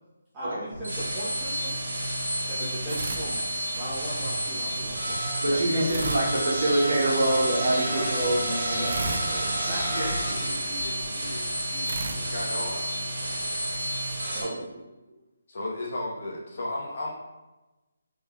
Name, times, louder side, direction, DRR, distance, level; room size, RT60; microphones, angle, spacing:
voice 1, 0.3-1.8 2.5-3.5 3.7-5.2 5.5-5.9 7.8-8.1 9.6-10.1 14.3-14.5, right 1 dB, 20° right, -11 dB, 0.7 m, -37 dB
sound 1, 0.7-14.4, right 1 dB, 90° right, 1.1 m, -30 dB
sound 2, 2.9-4.0 5.9-7.3 8.9-10.6 11.8-13.4, right 3 dB, 50° right, 0.4 m, -37 dB
voice 2, 5.4-9.5 14.4-14.6, right 1 dB, 70° right, -4 dB, 1.0 m, -26 dB
voice 3, 9.8-13.8 14.1-14.3 15.5-17.1, left 1 dB, 55° left, -3 dB, 0.9 m, -36 dB
3.4 x 3.3 x 2.3 m, 1.1 s
hypercardioid pair, 160°, 0 cm